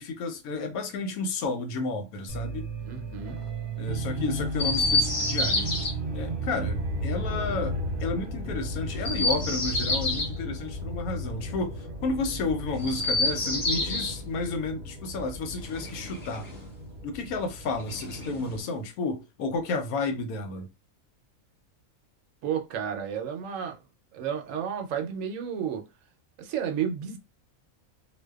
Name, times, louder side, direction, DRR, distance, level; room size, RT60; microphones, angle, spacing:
voice 1, 0.0-2.7 3.8-5.7 6.1-16.5 17.0-20.7, left 3 dB, 85° left, 1.1 m, -32 dB
sound 1, 2.3-18.6, right 1 dB, 50° right, 0.6 m, -35 dB
voice 2, 2.9-3.4 22.4-23.8 24.1-25.9 26.4-27.2, right 8 dB, 70° right, 0.9 m, -32 dB
Chirp tweet, 4.5-5.9 8.9-10.3 12.7-14.2 15.6-16.7 17.8-18.7, left 2 dB, 65° left, 1.1 m, -28 dB
2.6 x 2.2 x 2.3 m
omnidirectional pair, 1.5 m